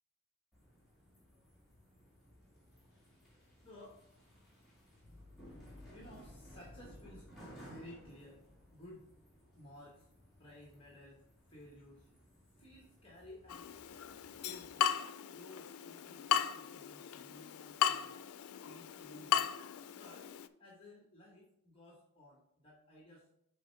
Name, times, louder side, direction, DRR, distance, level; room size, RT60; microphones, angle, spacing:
sound 1, 0.5-14.7, equal, ahead, 2.2 m, -58 dB
voice 1, 2.7-4.0 5.9-7.3 7.6-8.4 8.7-9.1 9.5-10.1 10.4-12.2 12.6-13.8 14.3-18.2 18.6-19.5 19.9-23.3, left 1 dB, 25° left, -2 dB, 1.1 m, -56 dB
Water tap faucet / Drip, 13.5-20.5, left 9 dB, 90° left, 0.4 m, -36 dB
7.6 x 4.1 x 4.4 m, 0.76 s
head